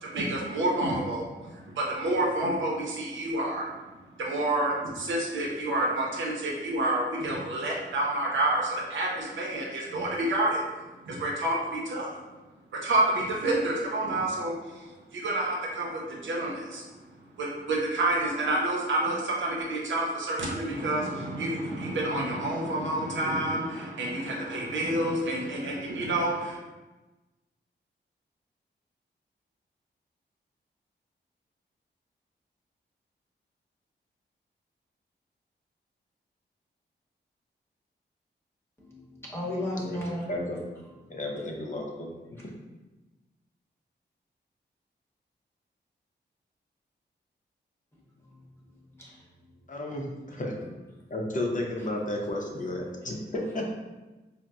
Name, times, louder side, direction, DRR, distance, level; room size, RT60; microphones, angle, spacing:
voice 1, 0.0-3.7 4.2-10.6 11.0-12.1 12.8-16.9 17.4-26.6, right 1 dB, 90° right, -2 dB, 0.6 m, -29 dB
voice 2, 38.8-40.3 49.0-49.2, left 1 dB, 10° left, -5 dB, 0.9 m, -34 dB
voice 3, 40.3-40.6 41.1-42.5 49.7-50.5 51.1-53.7, left 1 dB, 45° left, 0 dB, 0.6 m, -33 dB
4.0 x 2.0 x 2.3 m, 1.1 s
cardioid pair, 70°, 19 cm